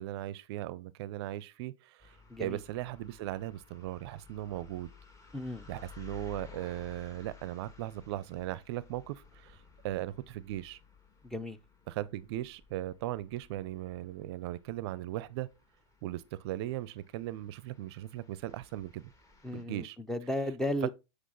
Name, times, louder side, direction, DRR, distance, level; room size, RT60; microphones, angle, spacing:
voice 1, 0.0-4.9 5.7-9.6 9.8-10.8 11.9-15.5 16.0-19.1 19.5-20.0, right 14 dB, 55° right, 0.5 m, -38 dB
sound 1, 2.0-19.6, left 6 dB, 20° left, 1.6 m, -56 dB
voice 2, 2.3-2.6 5.3-5.7 11.2-11.6 19.4-20.9, left 1 dB, 5° left, 0.6 m, -34 dB
8.4 x 4.9 x 3.9 m
hypercardioid pair, 100°, 16 cm